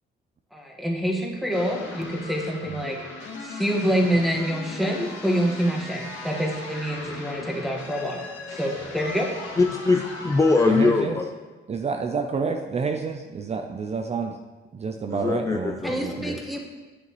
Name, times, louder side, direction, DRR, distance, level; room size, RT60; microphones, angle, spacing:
voice 1, 0.5-3.0 3.4-8.2 8.5-9.3 15.8-16.6, equal, ahead, 0 dB, 1.6 m, -26 dB
sound 1, 1.5-10.9, left 3 dB, 80° left, 2.3 m, -38 dB
voice 2, 9.6-11.2 15.1-16.0, left 3 dB, 15° left, 2 dB, 0.5 m, -22 dB
voice 3, 10.7-11.2 11.7-14.4 14.7-16.4, right 5 dB, 35° right, 5 dB, 0.6 m, -29 dB
9.8 x 7.5 x 3.1 m, 1.3 s
cardioid pair, 90°, 20 cm